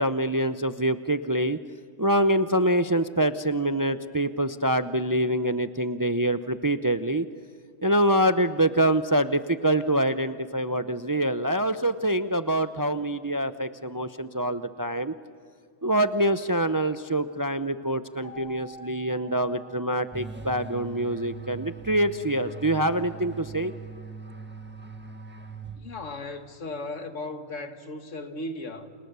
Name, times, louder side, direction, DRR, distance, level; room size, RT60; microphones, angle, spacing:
voice 1, 0.0-1.6 2.0-7.3 7.8-15.1 15.8-23.7, right 1 dB, 25° right, 0.5 m, -25 dB
Keyboard (musical), 18.2-20.8, left 1 dB, 80° right, 7.6 m, -48 dB
sound 1, 20.1-26.2, right 5 dB, 10° right, 1.6 m, -41 dB
voice 2, 25.8-28.9, left 2 dB, 85° left, 2.0 m, -36 dB
29.5 x 28.5 x 6.8 m
omnidirectional pair, 1.2 m